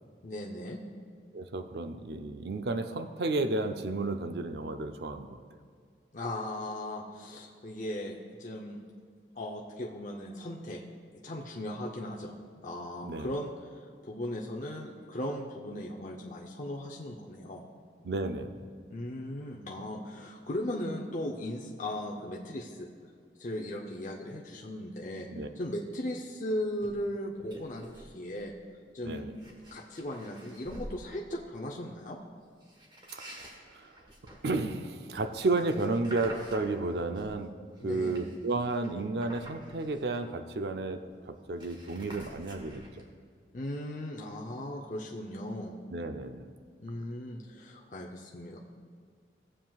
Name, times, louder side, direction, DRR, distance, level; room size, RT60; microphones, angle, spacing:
voice 1, 0.2-0.8 6.1-8.8 9.3-10.8 11.1-17.6 18.9-22.9 23.4-25.3 25.6-28.5 28.9-29.3 29.7-32.2 37.8-38.2 43.5-45.8 46.8-48.7, left 1 dB, 45° left, -2 dB, 0.6 m, -37 dB
voice 2, 1.3-5.4 13.0-13.4 18.0-18.6 25.3-25.5 29.0-29.4 33.3-34.0 34.4-37.5 37.8-42.8 45.9-46.5, right 2 dB, 70° right, 7 dB, 0.5 m, -32 dB
sound 1, 26.8-27.0 27.4-28.1 28.4-28.7 29.2-31.0 32.6-37.4 37.8-40.5 40.8-40.9 41.1-43.1, right 1 dB, 25° right, 1.2 m, -48 dB
16.5 x 7.5 x 2.4 m, 2.1 s
head